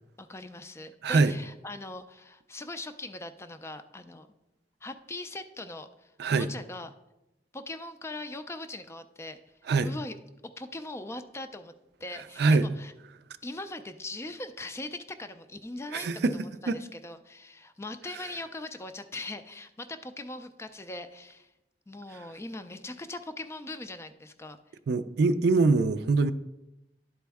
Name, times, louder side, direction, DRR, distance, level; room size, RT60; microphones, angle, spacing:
voice 1, 0.2-4.3 4.8-6.9 7.5-9.4 9.8-10.2 10.6-11.7 12.0-12.9 13.4-21.5 21.9-24.6, left 2 dB, 15° left, 9 dB, 0.3 m, -40 dB
voice 2, 1.0-1.3 6.2-6.5 9.7-9.9 12.4-12.8 15.9-16.3 16.7-16.8 24.9-26.3, right 3 dB, 65° right, 12 dB, 0.4 m, -23 dB
11.5 x 4.2 x 3.5 m, 0.93 s
head